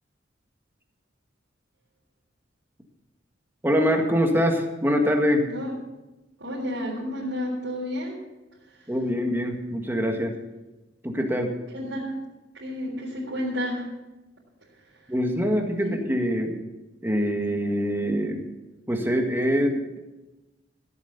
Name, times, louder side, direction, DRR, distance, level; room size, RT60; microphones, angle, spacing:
voice 1, 3.6-5.5 8.9-10.3 11.0-11.5 15.1-16.6 17.0-18.4 18.9-20.0, equal, 10° right, 3 dB, 1.7 m, -24 dB
voice 2, 5.4-5.7 6.4-8.2 8.7-8.9 11.7-12.2 12.5-13.9 14.8-14.9 15.8-15.9, equal, 85° right, -7 dB, 3.9 m, -31 dB
15.0 x 8.4 x 7.0 m, 1.1 s
head